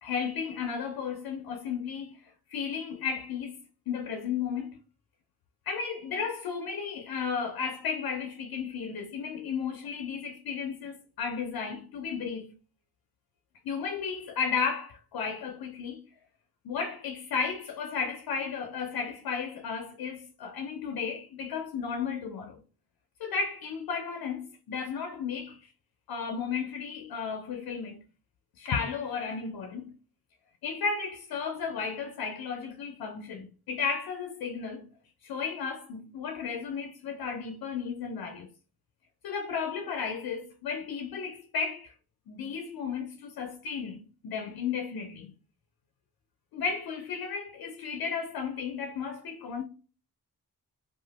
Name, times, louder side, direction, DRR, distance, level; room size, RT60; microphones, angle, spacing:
voice 1, 0.0-2.2 2.5-3.6 3.9-4.8 5.7-12.5 13.6-16.0 16.6-22.6 23.2-25.6 26.1-28.0 28.6-29.9 30.6-34.9 35.2-38.5 39.2-41.9 42.3-45.3 46.5-49.6, left 6 dB, 75° left, 0.5 m, -34 dB
2.8 x 2.3 x 2.8 m
wide cardioid pair, 105°, 36 cm